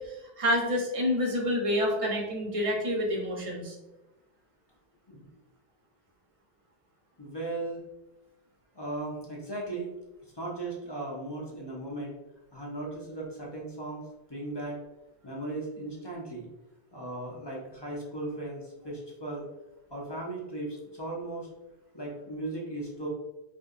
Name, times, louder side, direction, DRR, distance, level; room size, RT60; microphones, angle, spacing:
voice 1, 0.0-3.7, left 1 dB, 40° right, -1 dB, 0.7 m, -28 dB
voice 2, 7.2-7.8 8.8-9.9 10.3-12.2 12.5-14.8 15.2-16.5 16.9-19.5 19.9-21.5 21.9-23.1, right 2 dB, 35° left, -3 dB, 0.5 m, -37 dB
3.4 x 2.7 x 2.4 m, 1.0 s
omnidirectional pair, 1.0 m